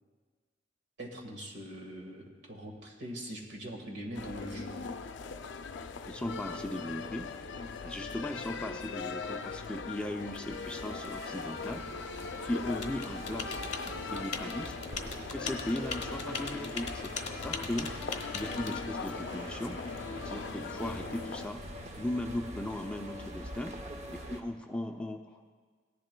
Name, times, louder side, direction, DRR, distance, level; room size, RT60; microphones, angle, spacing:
voice 1, 1.0-4.7, equal, 65° right, 1 dB, 1.7 m, -42 dB
sound 1, 4.1-21.5, left 4 dB, 70° left, 0.4 m, -40 dB
voice 2, 6.1-7.3 7.8-11.8 12.4-13.6 14.1-14.7 15.3-17.1 17.4-17.9 18.3-19.8 20.3-21.6 22.0-23.8 24.1-25.5, left 1 dB, 5° left, 3 dB, 0.5 m, -37 dB
sound 2, 10.5-24.4, equal, 40° right, 0.8 m, -45 dB
Typing, 12.8-18.8, left 5 dB, 40° left, 1.0 m, -39 dB
17.5 x 11.0 x 2.2 m, 1.5 s
head